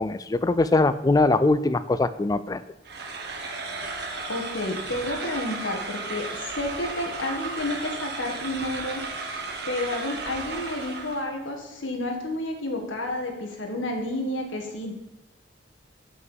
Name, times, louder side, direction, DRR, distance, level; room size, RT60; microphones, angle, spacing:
voice 1, 0.0-2.6, left 2 dB, 20° left, 13 dB, 0.3 m, -22 dB
sound 1, 2.8-11.3, right 3 dB, 55° right, 1.2 m, -34 dB
voice 2, 4.3-9.0 9.6-14.9, left 1 dB, 85° left, 2 dB, 1.6 m, -30 dB
6.4 x 5.8 x 7.2 m, 0.96 s
head